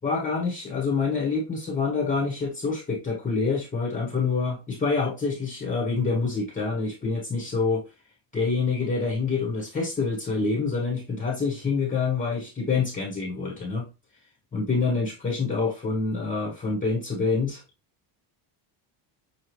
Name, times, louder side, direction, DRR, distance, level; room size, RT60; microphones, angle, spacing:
voice 1, 0.0-7.8 8.3-13.9 14.5-17.6, left 4 dB, 15° left, -2 dB, 1.1 m, -26 dB
6.8 x 2.3 x 3.1 m, 0.28 s
cardioid pair, 135°, 48 cm